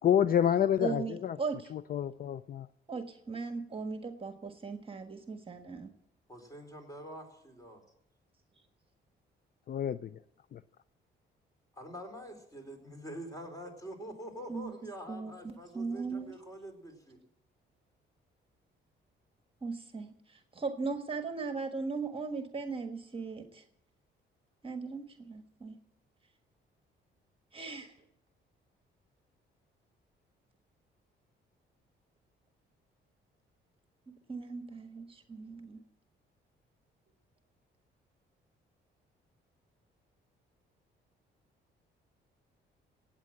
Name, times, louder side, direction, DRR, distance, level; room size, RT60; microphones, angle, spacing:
voice 1, 0.0-1.4 1.7-2.7 9.7-10.1 10.5-10.6, left 9 dB, 50° left, 15 dB, 0.5 m, -28 dB
voice 2, 0.8-1.7 2.9-5.9 14.5-14.7 15.1-16.4 19.6-23.6 24.6-25.8 27.5-27.9 34.3-35.8, right 4 dB, 25° right, 6 dB, 1.5 m, -38 dB
voice 3, 6.3-7.8 11.7-17.2, equal, 15° left, 4 dB, 4.4 m, -45 dB
17.0 x 8.8 x 7.6 m, 0.75 s
cardioid pair, 90°, 20 cm